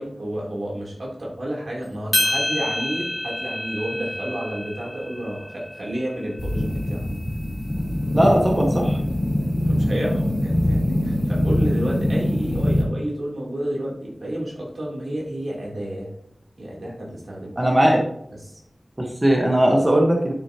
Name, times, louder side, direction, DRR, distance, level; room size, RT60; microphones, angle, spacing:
voice 1, 0.0-7.0 9.4-16.1 16.6-17.6 18.3-18.6, right 1 dB, 80° right, -4 dB, 3.2 m, -31 dB
sound 1, 2.1-6.5, left 1 dB, 10° left, 1.8 m, -28 dB
sound 2, 6.4-12.8, left 1 dB, 55° left, 3.3 m, -23 dB
voice 2, 8.1-9.0 17.6-18.0 19.0-20.3, right 1 dB, 25° right, 0 dB, 1.3 m, -18 dB
11.0 x 6.6 x 2.9 m, 0.76 s
wide cardioid pair, 75°, 0 cm